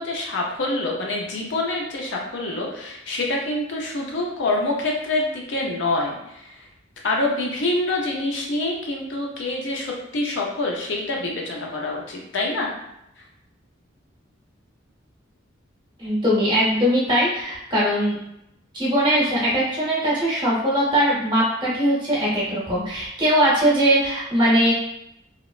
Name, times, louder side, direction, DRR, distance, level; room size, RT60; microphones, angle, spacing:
voice 1, 0.0-6.6 7.0-12.7, left 2 dB, 60° left, -1 dB, 0.5 m, -26 dB
voice 2, 16.0-18.2 18.7-24.7, equal, 25° right, -7 dB, 0.8 m, -20 dB
2.9 x 2.0 x 2.3 m, 0.81 s
head